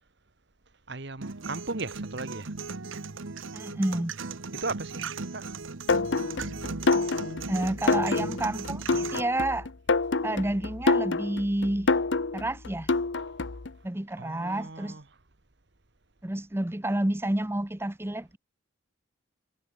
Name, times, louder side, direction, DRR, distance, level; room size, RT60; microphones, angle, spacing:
voice 1, 0.9-2.9 4.5-5.8 14.2-15.0, right 3 dB, 55° right, 1.5 m, -37 dB
sound 1, 1.2-9.2, right 4 dB, 75° right, 1.1 m, -37 dB
voice 2, 3.5-4.2 7.5-9.7 10.2-11.9 12.3-12.9 13.8-15.0 16.2-18.4, right 1 dB, 10° right, 0.7 m, -29 dB
sound 2, 5.9-13.7, left 3 dB, 65° left, 0.9 m, -27 dB
head